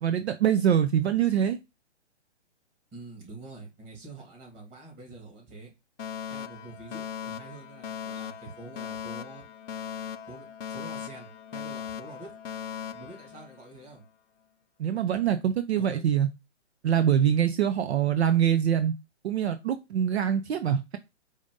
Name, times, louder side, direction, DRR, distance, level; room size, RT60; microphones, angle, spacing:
voice 1, 0.0-1.6 14.8-16.3 16.8-18.9 19.2-21.0, right 9 dB, 60° right, 0.5 m, -24 dB
voice 2, 2.9-5.7 6.3-9.5 10.3-12.3 12.9-14.1 15.8-16.1, right 3 dB, 15° right, 1.8 m, -46 dB
Alarm, 6.0-14.0, left 8 dB, 85° left, 0.6 m, -39 dB
4.8 x 2.7 x 3.7 m
hypercardioid pair, 145°, 36 cm